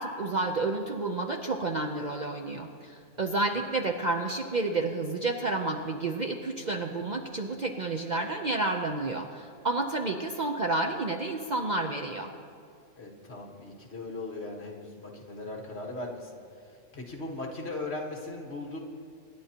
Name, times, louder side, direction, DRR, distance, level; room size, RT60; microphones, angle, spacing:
voice 1, 0.0-12.3, right 2 dB, 45° right, 3 dB, 0.6 m, -30 dB
voice 2, 13.0-16.3 16.9-18.8, left 2 dB, 55° left, 0 dB, 1.8 m, -38 dB
25.0 x 10.5 x 2.9 m, 2.3 s
omnidirectional pair, 1.3 m